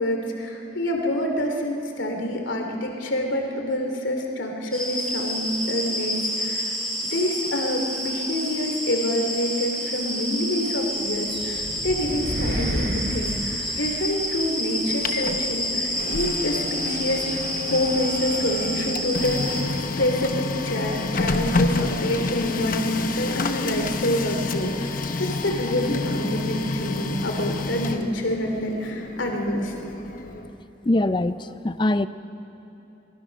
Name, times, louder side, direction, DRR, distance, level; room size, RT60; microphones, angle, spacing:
voice 1, 0.0-6.7 7.1-19.7 20.0-29.7, left 1 dB, 75° left, 2 dB, 2.7 m, -27 dB
sound 1, 4.7-19.6, equal, 5° left, 3.5 m, -29 dB
sound 2, 11.0-14.4, equal, 55° right, 2.4 m, -30 dB
Printer, 14.7-30.5, left 3 dB, 45° left, 0.8 m, -29 dB
voice 2, 30.8-32.1, left 1 dB, 25° left, 13 dB, 0.5 m, -22 dB
24.5 x 20.0 x 6.4 m, 3.0 s
head